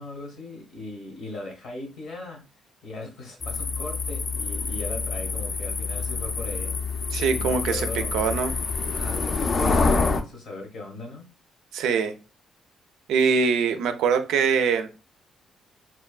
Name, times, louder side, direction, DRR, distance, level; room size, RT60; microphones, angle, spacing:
voice 1, 0.0-2.4 2.8-8.1 8.9-11.3, left 2 dB, 70° left, 1.0 m, -38 dB
sound 1, 3.4-10.2, left 4 dB, 45° left, 0.4 m, -27 dB
voice 2, 7.1-8.5 11.7-12.1 13.1-14.9, right 6 dB, 85° right, 0.4 m, -23 dB
3.0 x 2.2 x 2.3 m
cardioid pair, 90°, 0 cm